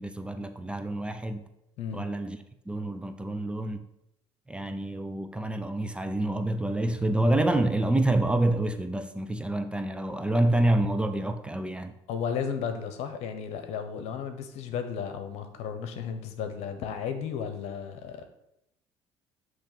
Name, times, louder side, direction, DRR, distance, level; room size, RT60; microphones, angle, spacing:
voice 1, 0.0-1.4 1.9-2.4 2.7-3.8 4.5-12.0, right 1 dB, 10° right, 0.6 m, -27 dB
voice 2, 12.1-18.3, left 7 dB, 70° left, 1.0 m, -34 dB
8.8 x 3.2 x 5.8 m
supercardioid pair, 85°, 11 cm